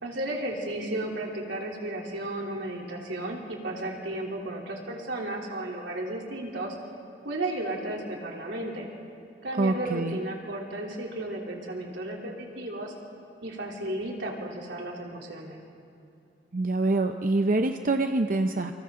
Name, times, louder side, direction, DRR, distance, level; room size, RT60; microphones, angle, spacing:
voice 1, 0.0-6.7 7.2-8.9 9.4-12.9 13.4-15.6, right 1 dB, 85° right, -1 dB, 3.3 m, -34 dB
voice 2, 9.6-10.2 16.5-18.7, right 2 dB, 50° right, 6 dB, 0.7 m, -25 dB
28.0 x 26.0 x 3.8 m, 2.7 s
head